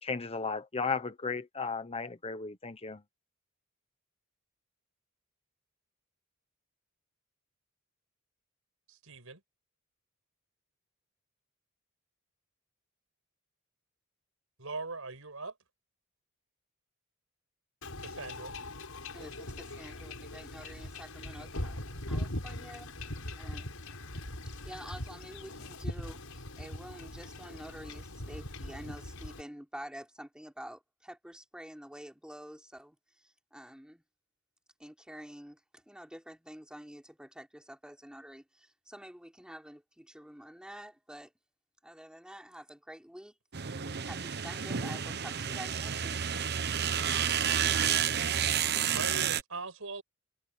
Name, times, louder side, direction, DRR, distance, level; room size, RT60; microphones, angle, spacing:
voice 1, 0.0-3.0, left 5 dB, 30° left, 1.1 m, -35 dB
voice 2, 8.9-9.4 14.6-15.5 18.0-18.5 48.9-50.0, right 3 dB, 75° right, 5.6 m, -40 dB
Wind / Ocean / Boat Water vehicle, 17.8-29.4, left 1 dB, 85° left, 6.0 m, -41 dB
voice 3, 19.1-22.9 23.4-23.8 24.5-34.0 34.8-41.3 41.8-43.3 44.0-46.2, equal, 5° right, 3.8 m, -48 dB
sound 1, 43.5-49.4, right 8 dB, 50° right, 1.0 m, -30 dB
head